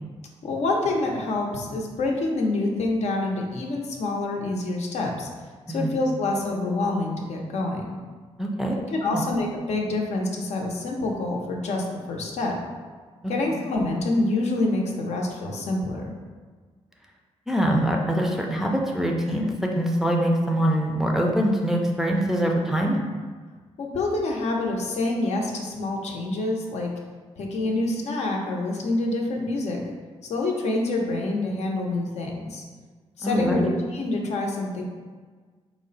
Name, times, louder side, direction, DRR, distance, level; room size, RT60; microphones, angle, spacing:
voice 1, 0.4-5.3 5.7-8.0 8.9-12.6 13.3-16.1 23.8-26.9 27.4-29.8 30.3-32.6 33.2-34.8, left 2 dB, 75° left, 0 dB, 0.6 m, -27 dB
voice 2, 8.4-8.8 9.0-9.2 17.5-23.0 33.2-33.7, equal, 5° right, -1 dB, 0.4 m, -24 dB
4.7 x 2.1 x 3.9 m, 1.5 s
wide cardioid pair, 125°, 11 cm